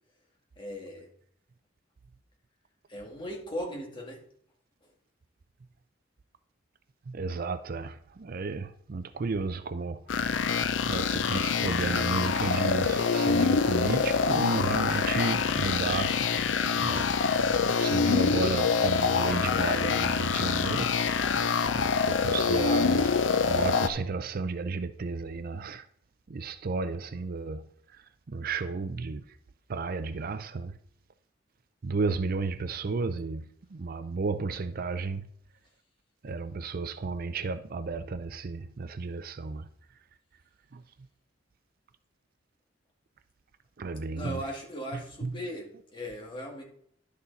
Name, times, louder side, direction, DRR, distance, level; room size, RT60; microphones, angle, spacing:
voice 1, 0.6-1.1 2.9-4.2 44.1-46.6, equal, 25° left, 1.9 m, -38 dB
voice 2, 7.1-16.3 16.8-17.1 17.4-20.9 21.7-25.9 26.3-29.3 29.7-30.8 31.8-35.3 36.2-39.7 40.7-40.8 43.8-44.4 44.9-45.3, right 4 dB, 50° right, 0.5 m, -33 dB
sound 1, 10.1-23.9, left 5 dB, 70° left, 0.6 m, -26 dB
11.0 x 6.6 x 4.0 m
head